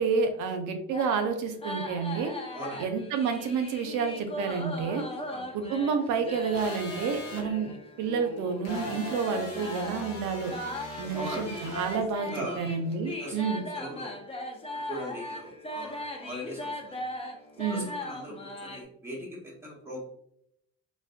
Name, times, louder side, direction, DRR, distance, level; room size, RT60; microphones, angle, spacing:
voice 1, 0.0-2.3 2.8-5.0 5.5-7.7 8.0-10.5 11.0-13.6 17.6-17.9, right 5 dB, 85° right, 6 dB, 0.5 m, -29 dB
sound 1, 0.9-18.8, left 1 dB, 20° left, 0.4 m, -38 dB
voice 2, 2.5-2.8 5.1-5.4 11.1-11.5 12.2-12.6 13.0-13.4 13.7-14.2 14.7-17.0 17.6-20.0, right 1 dB, 10° right, -5 dB, 1.0 m, -40 dB
sound 2, 6.5-7.4 8.6-12.0, left 2 dB, 45° left, 1.0 m, -42 dB
2.4 x 2.1 x 2.4 m, 0.74 s
cardioid pair, 90°, 30 cm